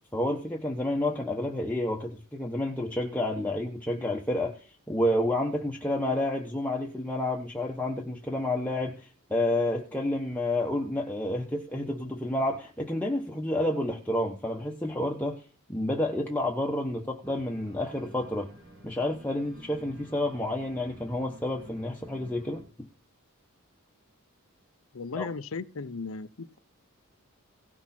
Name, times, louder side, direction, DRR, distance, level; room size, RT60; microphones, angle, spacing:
voice 1, 0.1-15.4 15.7-18.5 18.8-22.6 25.2-25.3, left 1 dB, 5° left, -1 dB, 1.1 m, -30 dB
Organ, 17.2-22.6, equal, 55° right, 3.6 m, -51 dB
voice 2, 24.9-26.6, left 4 dB, 65° left, 14 dB, 0.6 m, -36 dB
17.5 x 6.2 x 4.3 m, 0.38 s
head